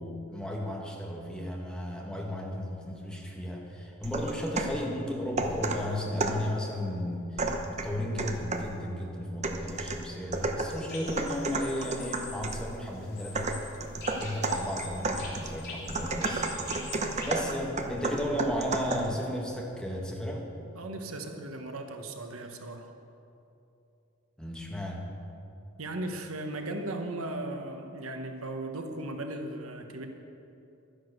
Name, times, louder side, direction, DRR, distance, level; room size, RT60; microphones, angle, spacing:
voice 1, 0.0-13.6 14.1-16.5 17.2-20.5 24.4-25.1, left 1 dB, 5° left, -1 dB, 1.6 m, -34 dB
sound 1, 4.0-4.8 5.4-6.5 7.4-8.8 9.4-12.7 13.3-19.2, right 3 dB, 35° right, 0.9 m, -32 dB
sound 2, 10.7-17.3, left 3 dB, 50° left, 3.2 m, -45 dB
voice 2, 20.7-22.9 25.8-30.1, right 2 dB, 90° right, 5 dB, 1.2 m, -37 dB
12.0 x 10.0 x 6.7 m, 2.7 s
head